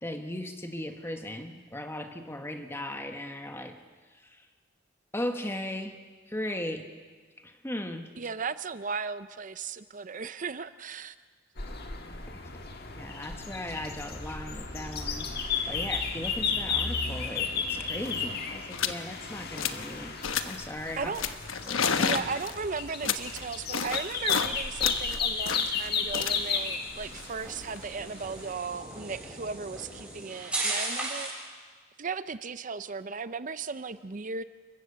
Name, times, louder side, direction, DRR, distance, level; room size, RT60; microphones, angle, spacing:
voice 1, 0.0-3.8 4.1-4.5 5.1-6.0 6.3-6.8 7.4-8.1 12.0-12.3 13.0-20.1 20.4-21.1 21.6-22.2, left 1 dB, 10° left, 5 dB, 1.4 m, -37 dB
voice 2, 8.2-11.2 21.0-21.2 22.0-31.3 32.0-34.4, right 5 dB, 40° right, 13 dB, 0.6 m, -36 dB
sound 1, 11.6-28.5, left 5 dB, 50° left, 1.7 m, -34 dB
sound 2, 17.7-17.8 17.9-18.2 18.7-19.0 19.4-19.9 20.2-20.7 21.2-24.5 24.8-27.8, left 6 dB, 75° left, 1.1 m, -32 dB
sound 3, 20.7-31.5, right 2 dB, 5° right, 7.6 m, -40 dB
29.0 x 15.5 x 6.9 m, 1.5 s
head